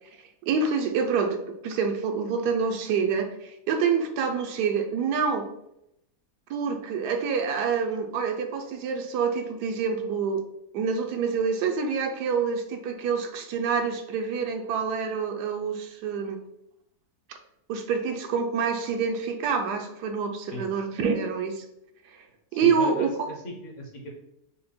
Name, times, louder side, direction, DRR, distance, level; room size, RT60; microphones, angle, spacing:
voice 1, 0.5-5.5 6.5-10.4 10.7-16.4 17.7-21.6 22.5-23.3, right 5 dB, 80° right, 5 dB, 1.2 m, -27 dB
voice 2, 22.5-24.1, equal, 55° left, 0 dB, 1.1 m, -37 dB
5.0 x 2.2 x 4.2 m, 0.80 s
omnidirectional pair, 1.7 m